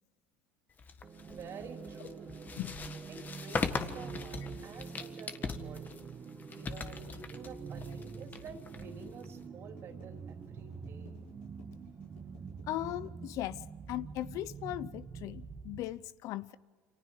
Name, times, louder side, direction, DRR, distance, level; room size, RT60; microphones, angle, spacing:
sound 1, 0.8-9.4, left 5 dB, 25° left, 1.6 m, -40 dB
sound 2, 1.0-16.0, right 5 dB, 30° right, 1.7 m, -46 dB
voice 1, 1.3-2.3 3.1-6.0 6.5-11.2, right 5 dB, 45° right, 3.6 m, -50 dB
sound 3, 3.1-14.6, left 5 dB, 85° left, 6.6 m, -62 dB
voice 2, 12.7-16.5, left 15 dB, 55° left, 0.7 m, -38 dB
29.0 x 26.0 x 4.9 m
supercardioid pair, 95°, 6 cm